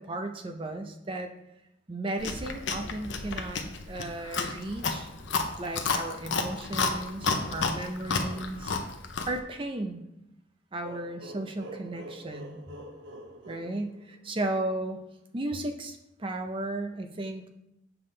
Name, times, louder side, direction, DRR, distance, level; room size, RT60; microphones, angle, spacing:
voice 1, 0.0-1.3 1.9-3.6 3.9-5.1 5.6-8.7 9.3-10.0 10.7-12.6 13.5-15.0 15.3-17.5, right 2 dB, 25° right, 6 dB, 0.6 m, -35 dB
Chewing mastication, 2.2-9.4, left 4 dB, 70° left, 0.7 m, -31 dB
sound 1, 10.8-14.5, right 1 dB, 70° right, 0.6 m, -45 dB
6.9 x 5.5 x 3.3 m, 0.85 s
head